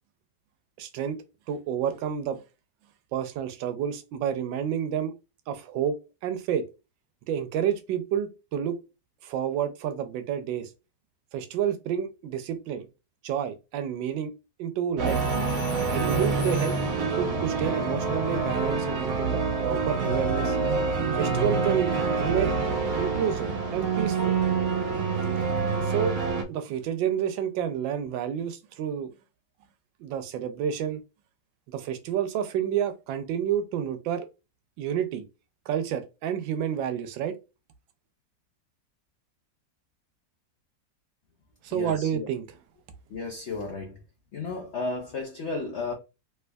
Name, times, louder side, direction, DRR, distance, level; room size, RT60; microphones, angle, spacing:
voice 1, 0.8-1.2 1.5-2.4 3.1-5.1 5.5-6.0 6.2-6.7 7.3-8.8 9.2-10.7 11.3-12.9 13.2-14.3 14.6-15.2 15.9-20.6 21.1-22.5 23.0-24.4 25.8-26.1 26.5-29.1 30.0-31.0 31.7-34.3 34.8-35.2 35.7-37.4 41.6-42.4, right 9 dB, 85° right, 1.3 m, -29 dB
sound 1, 15.0-26.4, right 4 dB, 60° right, 1.0 m, -26 dB
sound 2, 15.1-17.1 19.4-19.7, left 7 dB, 90° left, 1.4 m, -43 dB
voice 2, 41.7-42.3 43.1-44.0 44.3-45.9, left 3 dB, 75° left, 0.6 m, -33 dB
3.3 x 3.1 x 2.2 m
omnidirectional pair, 2.0 m